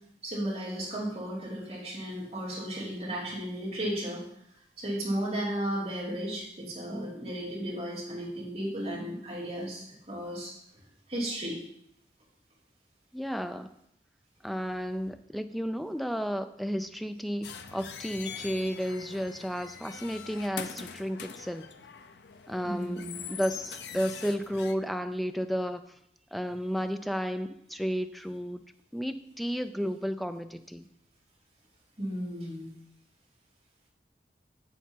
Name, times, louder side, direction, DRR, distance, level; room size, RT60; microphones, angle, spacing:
voice 1, 0.2-4.2 4.8-10.5 11.1-11.6 22.6-23.2 32.0-32.7, right 1 dB, 35° right, -5 dB, 3.1 m, -34 dB
voice 2, 13.1-13.7 14.4-21.7 22.5-25.8 26.3-28.6 28.9-30.9, equal, ahead, 9 dB, 0.4 m, -32 dB
sound 1, 17.4-24.7, left 7 dB, 75° left, 0.6 m, -43 dB
7.9 x 7.3 x 4.5 m, 0.75 s
head